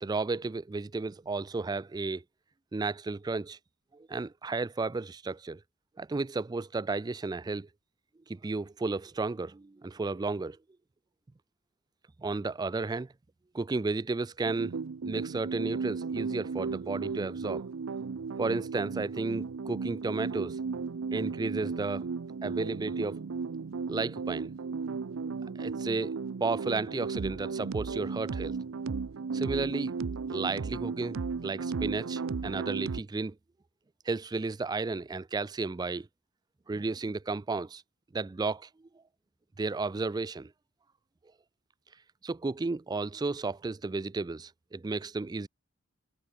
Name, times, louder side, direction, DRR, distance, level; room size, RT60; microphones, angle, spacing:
voice 1, 0.0-2.2 2.7-3.6 3.9-5.6 6.0-7.7 8.3-10.6 12.2-13.1 13.5-14.7 15.0-17.6 18.4-20.6 21.1-22.0 22.4-23.2 23.9-24.5 25.6-26.2 26.4-28.6 29.3-29.9 30.3-33.4 34.1-36.1 36.7-37.8 38.1-38.7 39.6-40.5 42.2-45.5, right 3 dB, 20° right, 0.3 m, -33 dB
sound 1, 14.4-33.0, right 5 dB, 75° right, 0.5 m, -35 dB
head